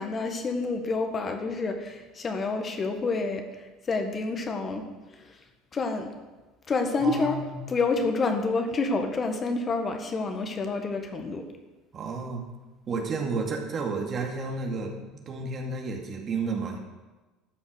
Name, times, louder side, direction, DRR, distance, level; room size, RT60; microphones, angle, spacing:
voice 1, 0.0-4.8 5.1-5.4 5.7-6.1 6.7-7.4 7.7-11.5, left 3 dB, 35° left, 5 dB, 1.5 m, -28 dB
voice 2, 7.0-7.6 11.9-12.5 12.9-16.8, right 4 dB, 40° right, 1 dB, 2.3 m, -31 dB
12.5 x 6.2 x 6.6 m, 1.2 s
supercardioid pair, 85°, 0 cm